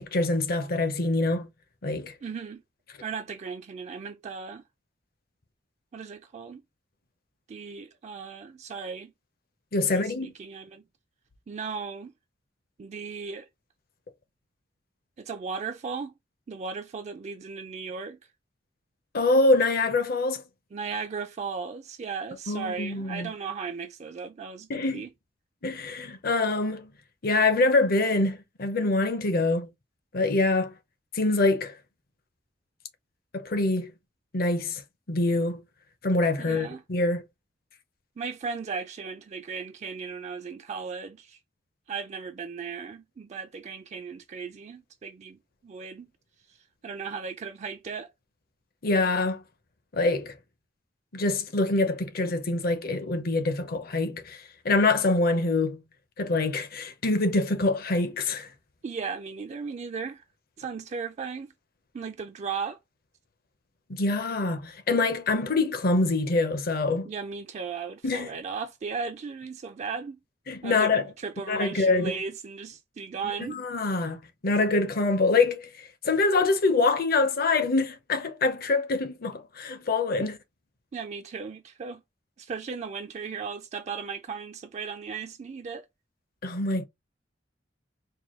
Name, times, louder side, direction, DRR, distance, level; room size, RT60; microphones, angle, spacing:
voice 1, 0.0-1.5 1.8-2.1 9.7-10.3 19.1-20.4 22.5-23.3 24.7-25.1 25.6-26.9 27.2-29.7 30.1-30.7 31.1-31.7 33.3-33.9 34.3-34.8 35.1-35.6 36.0-37.2 48.8-49.4 49.9-50.3 51.1-55.8 56.2-58.5 63.9-67.1 68.0-68.3 70.5-71.1 71.5-72.2 73.5-80.4 86.4-86.8, left 3 dB, 55° left, 0.7 m, -25 dB
voice 2, 2.2-2.6 3.0-4.6 5.9-6.6 7.5-9.1 9.8-10.8 11.5-12.1 12.8-13.5 15.2-16.1 16.5-18.2 20.7-25.1 36.4-36.8 38.2-41.4 41.9-46.1 46.5-46.6 46.8-48.1 58.8-60.2 60.6-61.5 61.9-62.8 67.0-70.2 70.6-73.6 80.9-82.0 82.4-85.9, right 5 dB, 40° right, 0.3 m, -36 dB
4.6 x 2.2 x 3.0 m
head